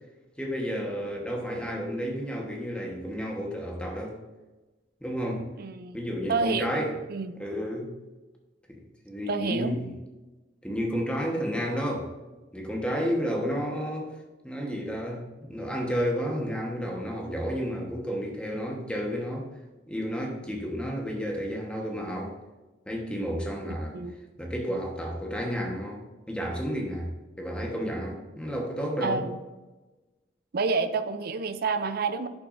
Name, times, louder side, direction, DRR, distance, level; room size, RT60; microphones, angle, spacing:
voice 1, 0.4-4.2 5.0-5.5 5.9-6.9 7.3-7.9 9.0-9.9 10.6-12.1 12.5-14.1 14.4-19.5 19.9-22.4 22.9-24.0 24.4-27.1 27.4-29.2, equal, 5° left, 0 dB, 1.2 m, -31 dB
voice 2, 5.6-6.0 6.3-6.7 7.1-7.5 9.3-9.8 23.9-24.2 29.0-29.4 30.5-32.3, right 4 dB, 55° right, 11 dB, 0.5 m, -28 dB
10.5 x 6.0 x 2.6 m, 1.2 s
head